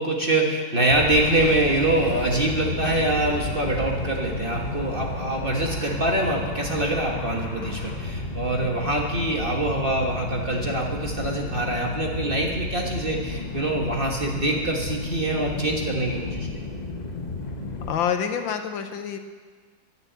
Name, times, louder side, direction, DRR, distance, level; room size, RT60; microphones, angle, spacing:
voice 1, 0.0-16.7, right 2 dB, 30° right, 0 dB, 1.5 m, -25 dB
sound 1, 0.9-17.9, left 2 dB, 30° left, 0.9 m, -32 dB
voice 2, 17.9-19.2, left 8 dB, 75° left, 7 dB, 1.6 m, -27 dB
11.0 x 10.5 x 8.1 m, 1.5 s
omnidirectional pair, 2.2 m